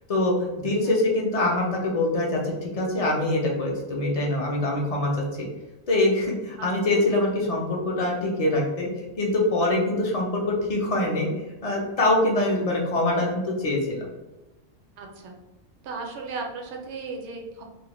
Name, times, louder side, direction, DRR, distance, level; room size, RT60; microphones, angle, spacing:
voice 1, 0.1-5.5 5.9-11.3 11.6-14.1, left 2 dB, 55° left, -2 dB, 0.4 m, -24 dB
voice 2, 15.0-15.3 15.8-17.6, right 4 dB, 75° right, 1 dB, 0.9 m, -35 dB
2.4 x 2.0 x 2.9 m, 1.1 s
omnidirectional pair, 1.2 m